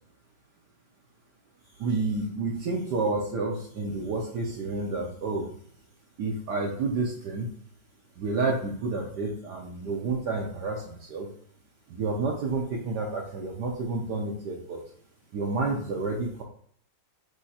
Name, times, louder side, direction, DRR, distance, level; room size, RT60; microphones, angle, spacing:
voice 1, 1.8-5.5 6.2-7.5 8.2-11.3 11.9-14.8 15.3-16.4, right 3 dB, 65° right, -2 dB, 1.1 m, -30 dB
6.2 x 2.8 x 2.8 m, 0.62 s
omnidirectional pair, 2.2 m